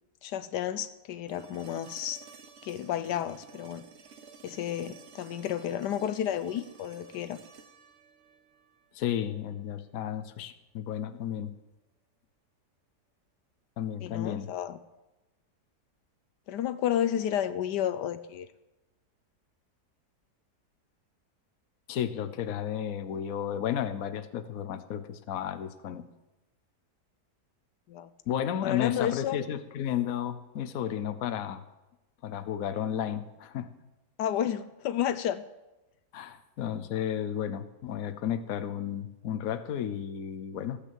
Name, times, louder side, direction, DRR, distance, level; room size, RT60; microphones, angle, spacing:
voice 1, 0.2-2.2 2.6-3.8 4.4-7.4 14.0-14.8 16.5-18.5 27.9-28.1 28.6-29.4 34.2-35.4, left 10 dB, 85° left, 12 dB, 1.3 m, -31 dB
sound 1, 1.3-9.3 11.5-11.6, right 6 dB, 50° right, 1.0 m, -53 dB
voice 2, 8.9-11.5 13.8-14.5 21.9-26.1 28.3-31.6 32.2-33.7 36.1-40.8, left 10 dB, 60° left, 12 dB, 1.2 m, -33 dB
15.0 x 8.3 x 7.5 m, 1.0 s
omnidirectional pair, 1.8 m